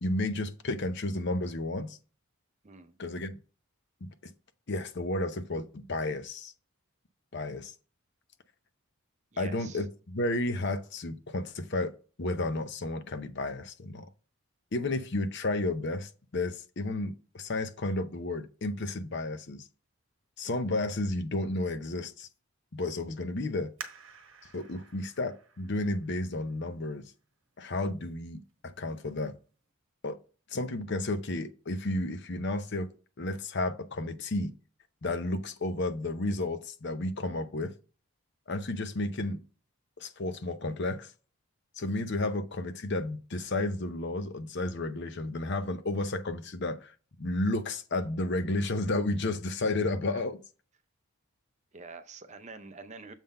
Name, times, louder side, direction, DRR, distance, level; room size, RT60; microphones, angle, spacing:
voice 1, 0.0-2.0 3.0-3.3 4.0-4.1 4.7-6.5 7.3-7.7 9.4-11.9 12.2-14.1 14.7-19.6 20.4-22.3 22.7-23.7 24.5-27.0 27.6-29.3 30.0-30.2 30.5-32.9 33.2-34.5 35.0-37.7 38.5-39.4 40.0-41.1 41.8-50.4, left 2 dB, 50° left, 0.7 m, -32 dB
voice 2, 2.6-3.0 9.3-9.8 50.1-50.3 51.7-53.1, right 4 dB, 30° right, 0.6 m, -46 dB
sound 1, 23.8-27.2 27.8-27.9 28.5-28.9 29.3-29.4, right 6 dB, 60° right, 1.1 m, -49 dB
7.2 x 3.8 x 5.3 m
head